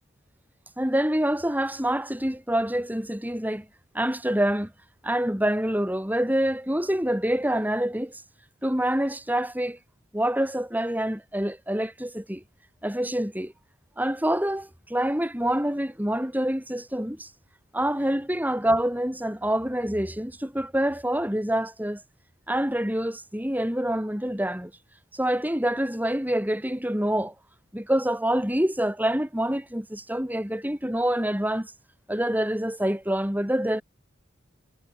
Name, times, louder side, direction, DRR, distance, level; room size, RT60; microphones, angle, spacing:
voice 1, 0.8-3.7 3.9-4.7 5.0-8.2 8.6-9.8 10.1-12.4 12.8-13.5 14.0-17.3 17.7-22.0 22.5-24.7 25.1-27.3 27.7-31.7 32.1-33.8, right 1 dB, 10° right, 5.1 m, -26 dB
head